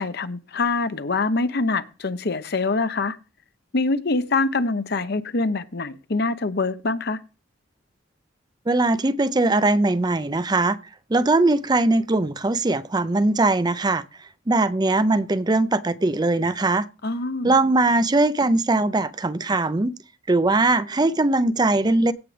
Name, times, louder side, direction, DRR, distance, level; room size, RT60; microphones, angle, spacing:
voice 1, 0.0-3.2 3.7-7.2 17.0-17.5, left 3 dB, 55° left, 0.9 m, -24 dB
voice 2, 8.7-10.8 11.1-14.0 14.5-16.9 17.4-20.0 20.3-22.1, right 2 dB, 20° right, 0.5 m, -20 dB
16.5 x 7.4 x 3.4 m
head